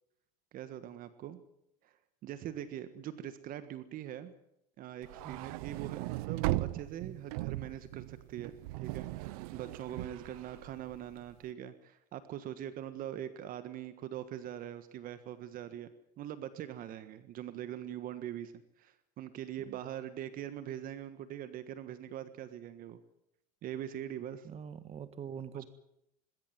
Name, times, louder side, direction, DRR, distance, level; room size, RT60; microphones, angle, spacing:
voice 1, 0.5-1.4 1.8-4.3 4.8-23.0 23.6-24.5 25.5-25.7, right 11 dB, 45° right, 12 dB, 1.5 m, -43 dB
sound 1, 5.0-11.3, right 19 dB, 70° right, 0.7 m, -38 dB
voice 2, 24.4-25.7, right 8 dB, 30° right, 13 dB, 1.6 m, -44 dB
20.0 x 17.5 x 9.6 m, 0.78 s
supercardioid pair, 105°, 19 cm